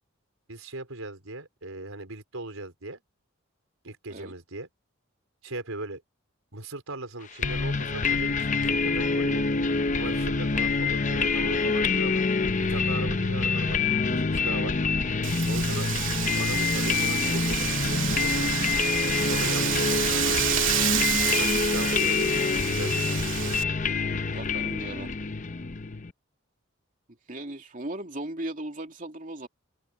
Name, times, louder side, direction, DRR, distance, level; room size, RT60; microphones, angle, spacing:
voice 1, 0.5-3.0 3.8-4.7 5.4-6.0 6.5-9.5 9.9-12.2 12.7-14.7 15.5-15.9 16.3-18.8 19.2-20.6 21.2-23.6, right 2 dB, 85° right, 4.5 m, -39 dB
sound 1, 7.4-26.1, left 4 dB, 40° left, 0.8 m, -26 dB
Wind, 15.2-23.6, right 10 dB, 65° right, 2.6 m, -29 dB
voice 2, 24.1-25.1 27.3-29.5, right 1 dB, 40° right, 2.7 m, -37 dB
open air
head